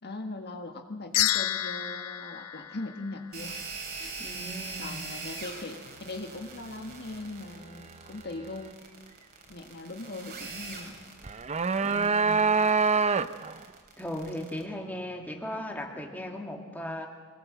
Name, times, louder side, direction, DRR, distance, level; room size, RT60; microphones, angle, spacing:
voice 1, 0.0-3.6 3.9-4.2 4.8-8.7 9.5-10.9, left 2 dB, 50° left, 5 dB, 1.6 m, -40 dB
sound 1, 1.1-3.6, left 12 dB, 80° left, 0.9 m, -30 dB
sound 2, 3.3-14.6, right 4 dB, 45° right, 3.5 m, -42 dB
voice 2, 4.2-5.1 11.8-12.5 14.0-17.1, left 1 dB, 10° left, 2 dB, 2.2 m, -37 dB
sound 3, 11.2-13.6, right 5 dB, 30° right, 0.6 m, -25 dB
25.0 x 19.5 x 7.8 m, 1.5 s
head